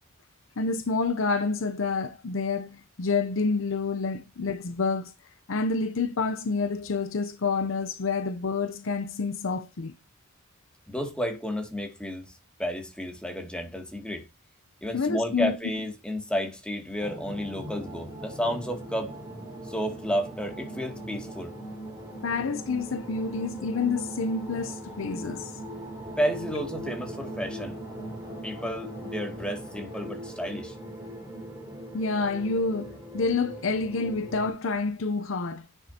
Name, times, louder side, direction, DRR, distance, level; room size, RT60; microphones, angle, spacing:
voice 1, 0.6-5.1 5.5-9.9 14.9-15.6 22.2-25.6 31.9-35.7, left 4 dB, 70° left, 0.7 m, -28 dB
voice 2, 10.9-12.3 12.6-14.2 14.8-19.2 19.7-21.5 26.2-27.8 28.4-30.7, equal, 5° left, 2.4 m, -31 dB
sound 1, 17.0-34.5, right 1 dB, 15° right, 4.2 m, -40 dB
10.0 x 6.5 x 2.8 m
head